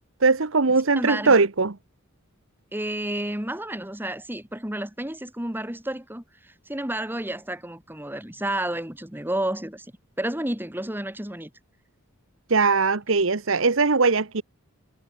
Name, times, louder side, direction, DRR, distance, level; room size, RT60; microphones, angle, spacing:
voice 1, 0.2-1.7 12.5-14.4, right 4 dB, 60° right, 1.1 m, -20 dB
voice 2, 1.0-1.4 2.7-9.9 10.2-11.5, right 1 dB, 10° right, 2.1 m, -31 dB
head